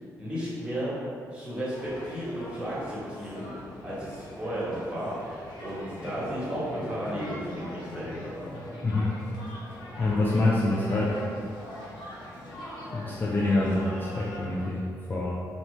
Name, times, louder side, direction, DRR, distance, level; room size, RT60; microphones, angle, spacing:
voice 1, 0.2-1.0 1.3-3.5 3.8-8.3, equal, 15° right, -9 dB, 1.3 m, -34 dB
sound 1, 1.7-14.7, left 1 dB, 85° left, 0.7 m, -42 dB
voice 2, 10.0-11.2 12.9-15.3, left 2 dB, 30° left, -5 dB, 0.4 m, -26 dB
2.7 x 2.7 x 3.3 m, 2.2 s
cardioid pair, 80°, 7 cm